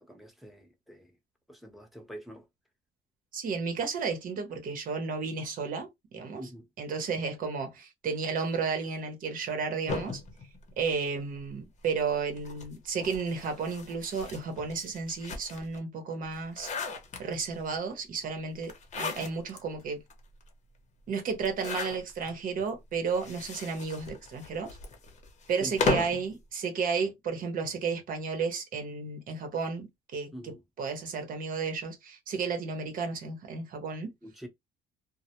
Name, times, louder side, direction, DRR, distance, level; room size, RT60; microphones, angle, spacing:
voice 1, 0.0-1.2 1.5-2.5 6.4-6.7 25.6-26.1 30.3-30.6 34.2-34.5, equal, ahead, 0.7 m, -44 dB
voice 2, 3.3-6.4 6.8-10.2 10.8-16.7 17.2-20.0 21.1-24.8 25.5-34.1, right 5 dB, 55° right, 0.8 m, -33 dB
sound 1, 9.9-11.5 12.3-15.8 16.2-17.6 18.6-19.6 20.1-20.2 20.4-20.5 21.4-22.3 23.1-26.3, left 4 dB, 45° left, 0.7 m, -36 dB
2.1 x 2.0 x 2.9 m
cardioid pair, 110°, 17 cm